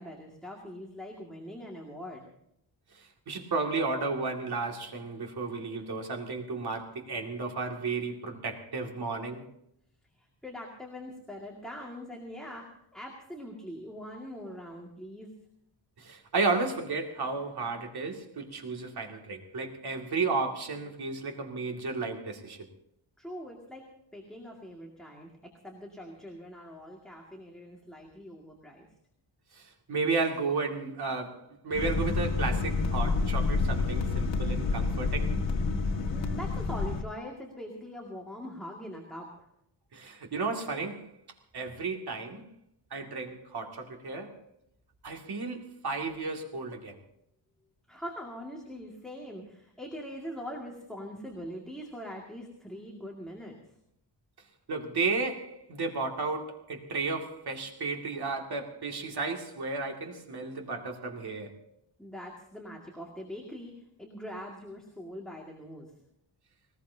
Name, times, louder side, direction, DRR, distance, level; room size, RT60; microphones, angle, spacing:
voice 1, 0.0-2.2 10.2-15.3 23.2-23.8 24.1-28.9 36.1-39.5 47.9-53.6 62.0-65.9, equal, ahead, 2.1 m, -42 dB
voice 2, 2.9-9.5 16.0-22.7 29.5-35.4 39.9-41.1 41.5-42.5 42.9-44.3 45.0-47.0 54.7-61.6, right 4 dB, 60° right, 2.4 m, -33 dB
sound 1, 31.7-37.0, left 3 dB, 75° left, 1.8 m, -28 dB
20.0 x 20.0 x 2.8 m
wide cardioid pair, 175°, 44 cm